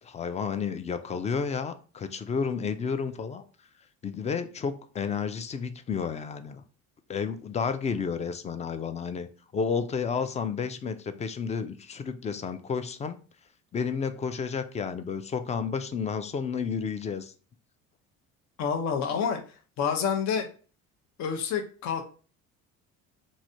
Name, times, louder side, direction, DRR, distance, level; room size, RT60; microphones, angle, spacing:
voice 1, 0.0-3.4 4.0-6.6 7.1-13.2 13.7-17.3, left 6 dB, 20° left, 10 dB, 0.4 m, -31 dB
voice 2, 18.6-19.4 19.8-20.5 21.2-22.0, left 7 dB, 55° left, 5 dB, 0.7 m, -28 dB
3.1 x 2.7 x 2.6 m, 0.38 s
supercardioid pair, 85°, 33 cm